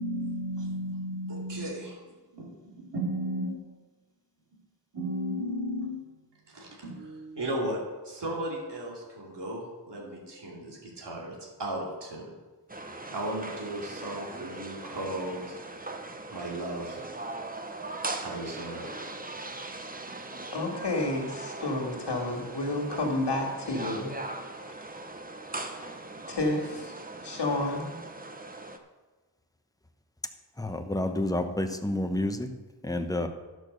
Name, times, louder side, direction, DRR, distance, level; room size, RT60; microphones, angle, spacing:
voice 1, 0.0-2.0 2.3-3.6 4.9-6.0 6.5-12.3 13.1-15.6 16.3-17.0 18.2-19.0, right 1 dB, 80° right, -3 dB, 2.8 m, -35 dB
sound 1, 12.7-28.8, right 2 dB, 20° right, 0.8 m, -40 dB
voice 2, 20.5-24.1 26.3-26.9 27.2-27.9, left 2 dB, 75° left, 1 dB, 2.2 m, -30 dB
voice 3, 30.6-32.5 32.8-33.3, left 1 dB, 10° left, 6 dB, 0.9 m, -29 dB
11.0 x 6.3 x 6.6 m, 1.2 s
wide cardioid pair, 105°, 41 cm